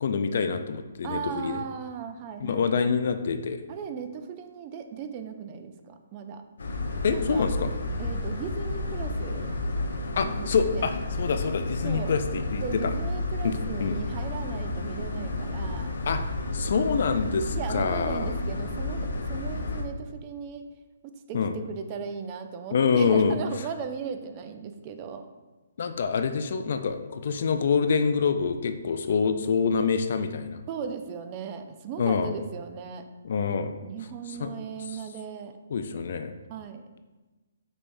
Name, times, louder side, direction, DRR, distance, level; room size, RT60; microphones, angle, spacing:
voice 1, 0.0-1.6 2.4-3.6 7.0-7.7 10.2-12.9 13.4-14.0 16.1-16.2 16.5-18.3 21.3-21.5 22.7-23.4 25.8-30.6 32.0-32.3 33.2-33.7 34.4-34.5 35.7-36.3, left 5 dB, 55° left, 8 dB, 0.3 m, -26 dB
voice 2, 1.0-2.9 3.7-6.4 7.1-7.5 8.0-9.5 10.2-10.9 11.8-12.2 12.6-15.9 17.5-20.6 21.0-25.3 30.7-33.0 33.8-35.5 36.5-36.9, right 6 dB, 25° right, 7 dB, 0.3 m, -37 dB
sound 1, 6.6-19.8, left 2 dB, 85° left, 0.7 m, -31 dB
5.3 x 3.2 x 2.6 m, 1.2 s
hypercardioid pair, 160°, 0 cm